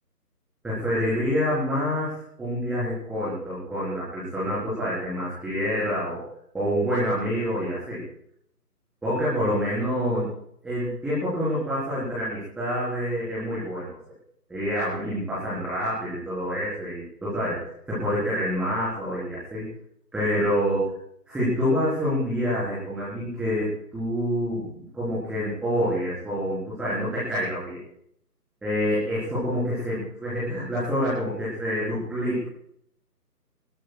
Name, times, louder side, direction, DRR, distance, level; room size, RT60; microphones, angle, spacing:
voice 1, 0.6-6.2 6.5-8.0 9.0-10.3 10.6-14.0 14.5-17.6 17.9-19.6 20.1-20.9 21.3-27.8 28.6-32.5, equal, ahead, -10 dB, 4.1 m, -27 dB
23.0 x 21.5 x 2.4 m, 0.68 s
figure-of-eight pair, 155°, 49 cm